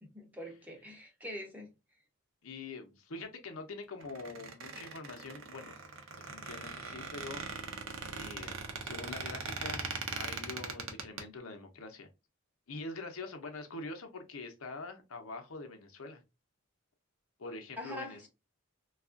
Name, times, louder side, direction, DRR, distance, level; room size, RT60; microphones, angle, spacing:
voice 1, 0.0-1.7 17.8-18.3, left 1 dB, 10° right, 0.7 m, -44 dB
voice 2, 2.4-5.7 6.2-7.5 8.1-9.9 10.1-12.1 12.7-16.2 17.4-18.3, left 3 dB, 85° left, 0.7 m, -44 dB
Squeak, 4.0-11.2, right 4 dB, 70° right, 0.6 m, -40 dB
3.4 x 2.3 x 2.4 m
head